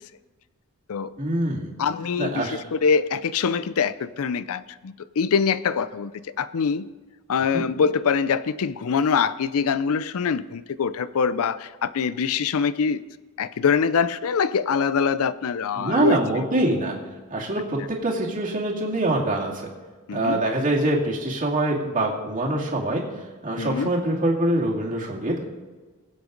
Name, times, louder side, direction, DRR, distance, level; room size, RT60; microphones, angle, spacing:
voice 1, 1.2-1.7 2.2-2.6 7.5-7.7 15.7-16.9 17.3-19.7 20.1-23.0 23.4-25.5, right 1 dB, 35° right, -2 dB, 2.4 m, -24 dB
voice 2, 1.8-6.1 6.4-6.9 7.3-13.0 13.4-16.4 20.1-20.4 23.6-23.9, left 6 dB, 70° left, 16 dB, 0.5 m, -24 dB
21.5 x 8.0 x 3.9 m, 1.3 s
head